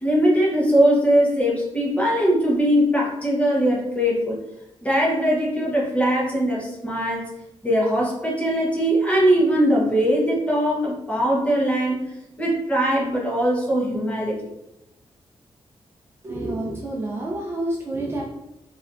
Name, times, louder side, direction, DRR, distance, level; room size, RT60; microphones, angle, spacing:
voice 1, 0.0-4.4 4.8-7.2 7.6-12.0 12.4-14.4, equal, 15° left, -4 dB, 1.1 m, -21 dB
voice 2, 16.2-18.2, right 1 dB, 25° right, -3 dB, 0.5 m, -28 dB
5.0 x 3.3 x 2.5 m, 0.89 s
wide cardioid pair, 175°, 10 cm